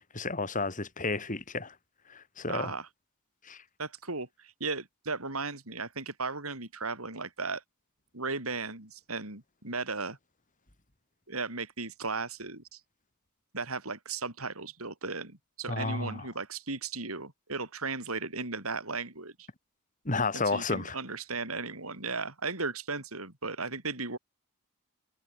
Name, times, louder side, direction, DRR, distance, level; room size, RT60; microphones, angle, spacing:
voice 1, 0.1-1.7 2.1-2.7 3.4-3.6 15.7-16.2 20.1-21.0, left 3 dB, 40° left, 3.6 m, -32 dB
voice 2, 2.5-2.9 3.8-7.6 8.1-10.2 11.3-12.8 13.5-19.5 20.3-24.2, right 4 dB, 85° right, 7.3 m, -36 dB
head